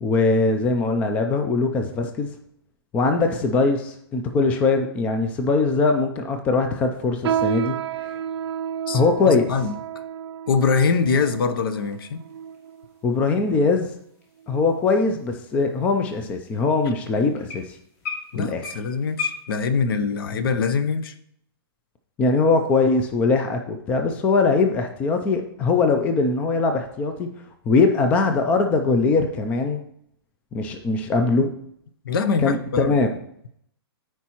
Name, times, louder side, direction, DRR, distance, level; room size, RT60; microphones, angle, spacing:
voice 1, 0.0-2.3 2.9-7.8 8.0-8.1 8.9-9.5 13.0-13.9 14.5-17.8 18.4-18.7 22.2-27.3 27.7-29.8 30.5-31.5 32.4-33.1, left 3 dB, 10° left, 0.4 m, -21 dB
sound 1, 7.2-12.9 13.6-13.7 14.4-14.7 15.1-15.3 16.0-16.1, right 9 dB, 80° right, 0.4 m, -31 dB
voice 2, 9.3-9.7 10.5-12.2 18.3-21.1 32.0-32.9, left 5 dB, 60° left, 0.7 m, -23 dB
sound 2, 10.9-19.5, left 5 dB, 40° left, 1.9 m, -39 dB
14.0 x 4.6 x 2.9 m
hypercardioid pair, 165°, 13 cm